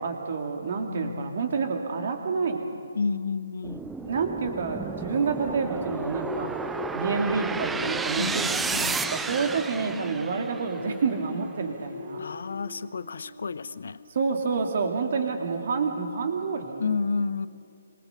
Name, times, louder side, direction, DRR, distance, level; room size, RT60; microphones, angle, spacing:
voice 1, 0.0-2.7 4.0-6.6 6.9-12.2 14.1-16.9, right 5 dB, 50° right, 4 dB, 2.7 m, -28 dB
voice 2, 0.8-1.5 2.9-3.9 8.2-9.1 12.2-14.0 16.8-17.5, left 5 dB, 60° left, 17 dB, 0.7 m, -31 dB
sound 1, 3.6-10.9, right 4 dB, 5° right, 0.6 m, -32 dB
Singing, 5.1-9.4 9.7-15.7, left 2 dB, 80° left, 3.0 m, -40 dB
26.0 x 20.0 x 6.8 m, 2.4 s
figure-of-eight pair, 135°, 0 cm